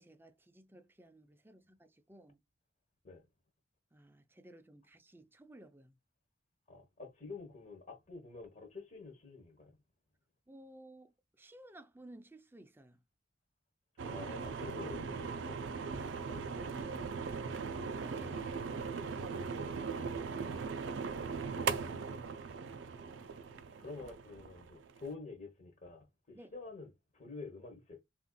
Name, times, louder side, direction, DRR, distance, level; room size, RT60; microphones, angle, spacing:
voice 1, 0.0-2.4 3.9-6.0 10.5-13.0 26.3-26.5, right 1 dB, 10° right, 0.5 m, -57 dB
voice 2, 6.7-9.7 14.0-15.6 16.3-17.1 20.9-21.1 22.9-23.3 23.8-28.0, left 3 dB, 40° left, 1.1 m, -49 dB
sound 1, 14.0-25.1, right 5 dB, 70° right, 0.5 m, -39 dB
3.7 x 2.5 x 2.2 m
head